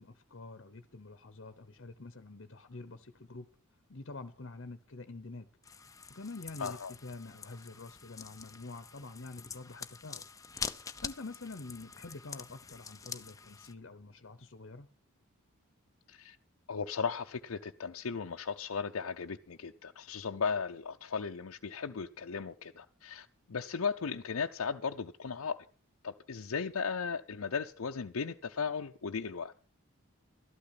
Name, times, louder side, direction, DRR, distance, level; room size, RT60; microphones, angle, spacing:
voice 1, 0.0-3.5 3.9-5.5 6.1-10.2 10.8-14.9, left 3 dB, 55° left, 0.9 m, -47 dB
sound 1, 5.6-13.7, left 5 dB, 15° left, 0.6 m, -45 dB
voice 2, 6.6-6.9 16.1-16.4 16.7-25.6 26.0-29.5, left 5 dB, 80° left, 0.6 m, -36 dB
13.0 x 12.0 x 5.8 m
head